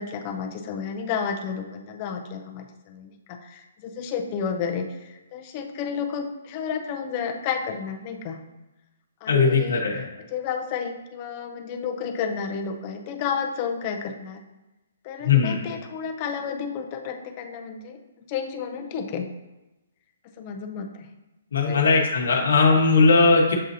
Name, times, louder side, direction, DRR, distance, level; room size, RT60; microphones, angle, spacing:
voice 1, 0.0-3.1 3.4-8.4 9.2-9.9 10.3-14.4 15.0-18.0 18.3-19.3 20.4-21.1 21.6-21.8, left 6 dB, 20° left, 4 dB, 0.3 m, -31 dB
voice 2, 9.3-10.0 15.2-15.6 21.5-23.5, left 4 dB, 75° left, -2 dB, 0.9 m, -19 dB
7.3 x 2.7 x 2.6 m, 1.0 s
hypercardioid pair, 180°, 0 cm